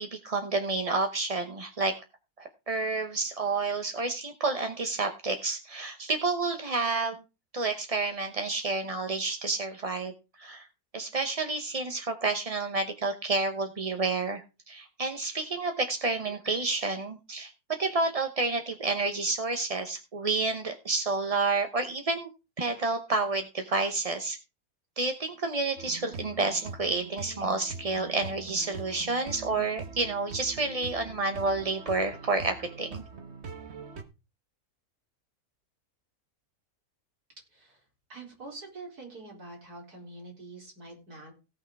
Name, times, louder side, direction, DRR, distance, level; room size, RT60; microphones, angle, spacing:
voice 1, 0.0-1.9 2.4-7.2 7.5-10.1 10.4-10.7 10.9-17.5 17.8-22.3 22.6-24.4 25.0-33.0, right 3 dB, 30° right, 6 dB, 0.7 m, -30 dB
sound 1, 25.8-34.0, right 4 dB, 45° right, 1.4 m, -43 dB
voice 2, 37.5-41.3, right 2 dB, 90° right, 0 dB, 4.7 m, -45 dB
17.0 x 6.3 x 4.7 m, 0.30 s
omnidirectional pair, 1.6 m